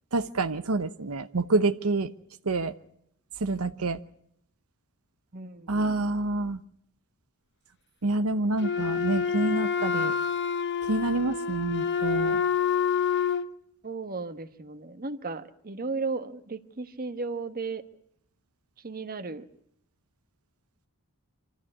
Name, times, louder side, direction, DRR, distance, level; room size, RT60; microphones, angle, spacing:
voice 1, 0.1-2.1 2.5-2.7 3.4-4.0 5.7-6.6 8.0-10.1 10.9-12.4, right 2 dB, 80° right, 10 dB, 0.9 m, -27 dB
voice 2, 5.3-6.0 13.8-17.8 18.8-19.4, right 4 dB, 45° right, 9 dB, 1.3 m, -35 dB
Wind instrument woodwind instrument, 8.6-13.5, left 6 dB, 55° left, 1.0 m, -27 dB
26.0 x 14.5 x 9.8 m, 0.70 s
head